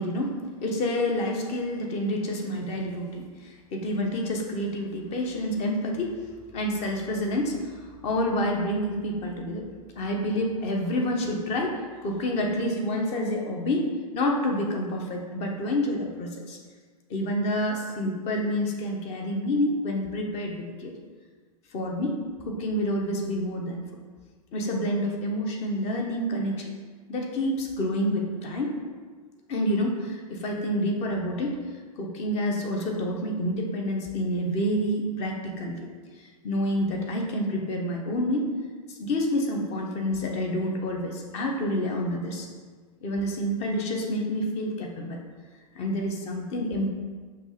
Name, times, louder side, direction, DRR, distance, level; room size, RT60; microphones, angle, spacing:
voice 1, 0.0-6.1 6.5-9.7 9.9-16.6 17.1-20.9 21.7-22.2 22.4-23.9 24.5-26.7 27.1-28.8 29.5-31.6 32.0-35.9 36.4-38.5 38.9-42.5 43.0-45.2 45.7-46.9, equal, 35° left, 1 dB, 1.2 m, -28 dB
6.0 x 3.3 x 5.7 m, 1.5 s
figure-of-eight pair, 100°, 20 cm